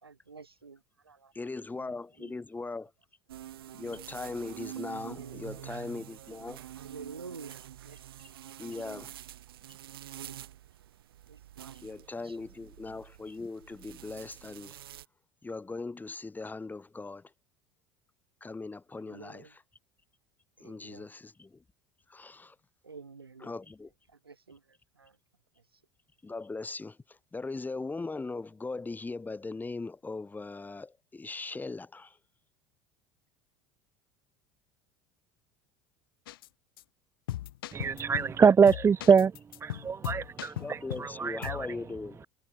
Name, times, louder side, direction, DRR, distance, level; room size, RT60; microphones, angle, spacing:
voice 1, 0.0-1.3 1.8-2.4 5.0-5.8 6.7-8.4 8.8-9.0 10.1-10.4 11.3-12.5 19.0-19.5 20.6-21.1 22.8-23.5 24.1-25.2 25.7-25.8, right 4 dB, 90° right, 1.6 m, -50 dB
voice 2, 1.3-2.9 3.7-6.6 8.6-9.1 11.8-14.8 15.4-17.3 18.4-19.5 20.6-21.6 22.1-22.5 23.4-23.9 26.2-32.2 40.4-42.3, left 3 dB, 15° left, 1.5 m, -39 dB
sound 1, 3.3-15.1, right 12 dB, 75° right, 2.6 m, -47 dB
sound 2, 36.3-36.5 36.8-36.9 37.3-38.4 38.7-41.1 41.4-41.7, left 15 dB, 70° left, 0.8 m, -38 dB
voice 3, 37.7-39.3 39.6-41.6, right 6 dB, 20° right, 0.5 m, -24 dB
figure-of-eight pair, 70°, 12 cm